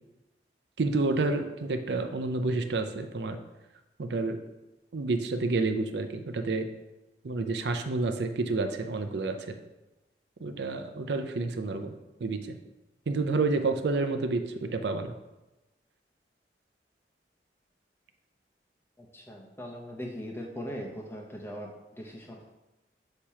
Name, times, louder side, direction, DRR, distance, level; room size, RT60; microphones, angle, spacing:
voice 1, 0.8-3.4 4.0-4.4 4.9-6.7 7.2-9.5 10.4-11.9 12.2-12.6 13.1-15.1, right 3 dB, 75° right, 7 dB, 0.5 m, -29 dB
voice 2, 19.0-22.5, equal, 15° left, 0 dB, 0.8 m, -40 dB
6.6 x 2.9 x 5.6 m, 1.0 s
head